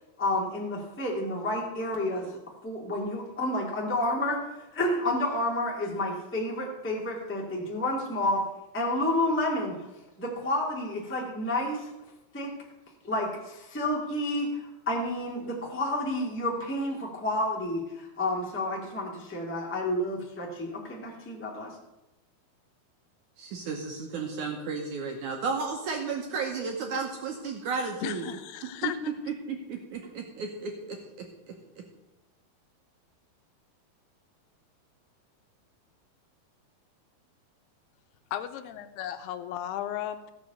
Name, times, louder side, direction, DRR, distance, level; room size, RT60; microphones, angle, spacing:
voice 1, 0.2-2.3 2.6-4.4 4.7-8.4 8.7-9.7 10.2-11.9 12.3-12.5 13.0-21.7, left 1 dB, 10° left, -2 dB, 0.5 m, -30 dB
voice 2, 23.4-28.3 28.8-28.9 29.5-31.8, right 5 dB, 70° right, 2 dB, 1.9 m, -34 dB
voice 3, 28.0-29.0 38.3-40.3, left 11 dB, 85° left, 10 dB, 2.7 m, -35 dB
14.5 x 6.1 x 6.7 m, 0.99 s
omnidirectional pair, 4.6 m